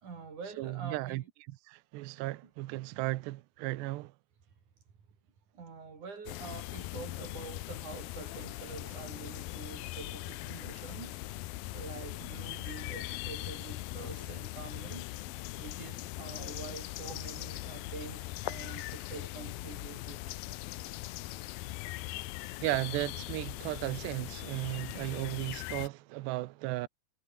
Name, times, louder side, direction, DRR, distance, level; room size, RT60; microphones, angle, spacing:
voice 1, 0.0-1.3 5.5-11.2 11.7-15.1 15.6-20.2, right 5 dB, 45° right, 5.2 m, -46 dB
voice 2, 0.6-4.1 22.6-26.9, right 19 dB, 80° right, 2.9 m, -35 dB
sound 1, 6.3-25.9, left 18 dB, 85° left, 2.1 m, -40 dB
omnidirectional pair, 5.2 m